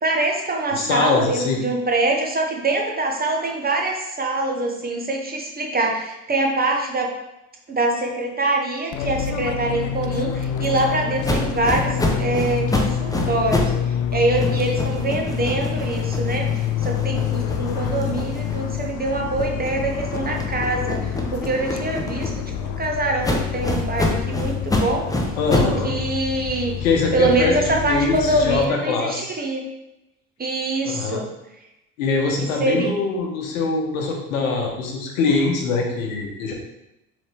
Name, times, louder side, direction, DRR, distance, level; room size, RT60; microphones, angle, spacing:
voice 1, 0.0-7.1 7.7-25.1 25.5-26.8 27.1-29.6 30.4-31.3 32.4-33.0, right 2 dB, 25° right, 1 dB, 1.0 m, -24 dB
voice 2, 0.7-1.6 25.4-25.9 26.8-29.4 30.8-31.2 32.0-36.5, left 4 dB, 80° left, 1 dB, 1.0 m, -23 dB
Fixed-wing aircraft airplane, 8.9-28.6, left 9 dB, 50° left, 0.5 m, -27 dB
sound 1, 11.2-13.8 14.1-18.9 19.3-22.7 23.2-25.8, left 1 dB, 10° left, 0.7 m, -27 dB
4.0 x 3.5 x 3.4 m, 0.89 s
hypercardioid pair, 65°, 40 cm